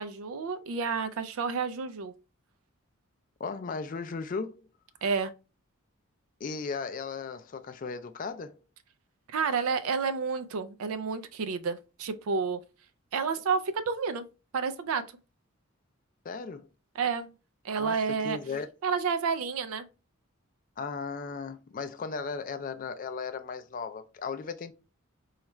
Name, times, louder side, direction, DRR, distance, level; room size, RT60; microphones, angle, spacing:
voice 1, 0.0-2.1 5.0-5.3 9.3-12.6 13.1-14.2 14.5-15.0 16.9-17.3 17.6-18.4 18.8-19.9, right 5 dB, 85° right, 0.4 m, -30 dB
voice 2, 3.4-4.6 6.4-8.5 16.2-16.7 17.8-18.7 20.8-24.7, left 5 dB, 40° left, 0.3 m, -36 dB
4.3 x 2.4 x 3.0 m
head